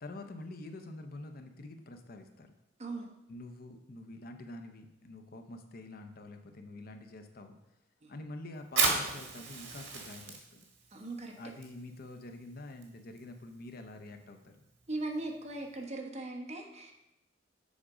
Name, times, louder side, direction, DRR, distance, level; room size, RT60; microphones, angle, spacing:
voice 1, 0.0-2.5 3.3-7.6 8.1-10.6 11.4-14.6, left 2 dB, 55° left, 6 dB, 0.7 m, -46 dB
Fire, 8.6-15.8, right 4 dB, 80° right, 1.7 m, -37 dB
voice 2, 10.9-11.3 14.9-16.9, right 2 dB, 35° right, 1 dB, 1.2 m, -39 dB
7.2 x 5.0 x 5.0 m, 0.88 s
head